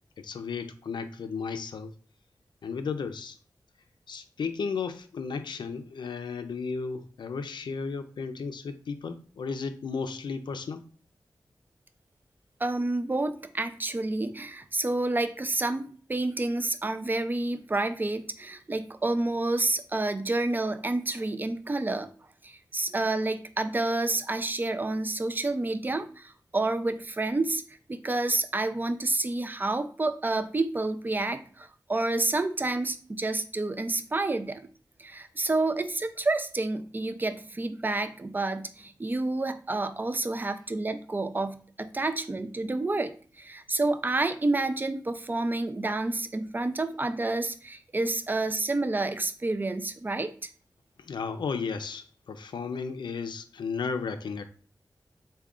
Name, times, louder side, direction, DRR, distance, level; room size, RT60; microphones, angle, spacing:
voice 1, 0.2-1.9 2.6-3.4 4.1-10.8 51.0-54.5, left 5 dB, 80° left, 9 dB, 0.4 m, -34 dB
voice 2, 12.6-22.1 22.4-27.6 27.9-34.7 35.0-50.3, right 2 dB, 25° right, 10 dB, 0.4 m, -29 dB
3.6 x 2.2 x 3.5 m, 0.42 s
wide cardioid pair, 70°, 8 cm